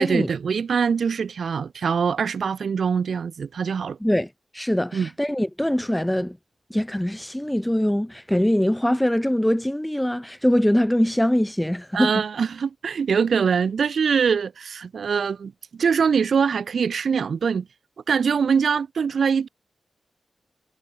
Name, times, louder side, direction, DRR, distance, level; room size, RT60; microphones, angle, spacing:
voice 1, 0.0-4.0 4.9-5.1 11.9-15.5 15.8-17.7 18.1-19.5, right 6 dB, 75° right, 2.8 m, -23 dB
voice 2, 4.0-6.4 6.7-12.2, equal, 5° left, 2.6 m, -23 dB
wide cardioid pair, 105°, 0 cm